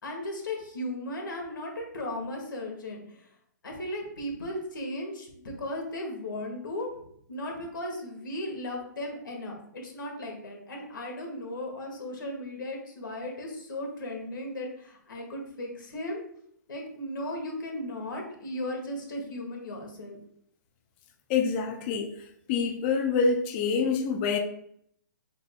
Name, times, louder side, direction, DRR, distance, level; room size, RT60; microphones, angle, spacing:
voice 1, 0.0-3.3 3.6-6.9 7.3-16.2 16.7-20.2, left 1 dB, 80° left, 1 dB, 1.7 m, -36 dB
voice 2, 21.3-22.2 22.5-24.4, left 5 dB, 30° left, 3 dB, 0.5 m, -26 dB
5.4 x 3.9 x 2.3 m, 0.69 s
hypercardioid pair, 150°, 11 cm